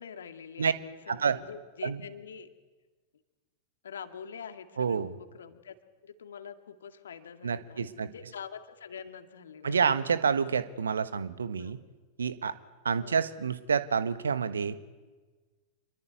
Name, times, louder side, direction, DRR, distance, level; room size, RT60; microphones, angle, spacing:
voice 1, 0.0-2.5 3.8-5.8 6.0-9.9 11.6-11.8 13.0-13.2, left 7 dB, 65° left, 7 dB, 2.2 m, -45 dB
voice 2, 4.8-5.1 7.4-8.1 9.6-11.8 12.2-12.5 12.8-14.8, right 6 dB, 70° right, 14 dB, 1.3 m, -28 dB
26.5 x 22.5 x 9.4 m, 1.3 s
figure-of-eight pair, 90°, 0 cm